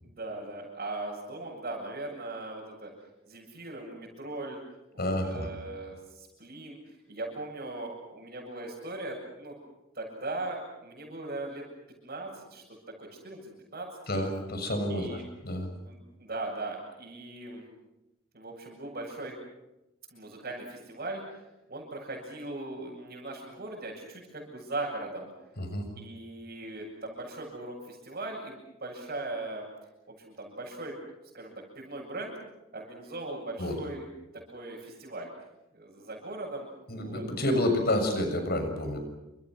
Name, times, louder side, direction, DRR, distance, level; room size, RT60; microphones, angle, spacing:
voice 1, 0.0-2.9 3.3-4.6 4.9-6.8 7.1-9.6 9.9-11.6 12.0-12.6 13.0-13.9 14.9-15.2 15.8-17.6 18.3-19.3 20.1-21.4 21.7-25.3 25.9-29.6 30.1-31.0 31.3-32.3 32.7-34.1 34.3-35.3 35.7-37.2, right 2 dB, 45° right, -5 dB, 7.5 m, -39 dB
voice 2, 5.0-5.5 14.1-15.7 25.6-25.9 33.6-33.8 36.9-39.0, left 1 dB, 50° left, 6 dB, 6.7 m, -29 dB
28.5 x 27.5 x 6.3 m, 0.95 s
head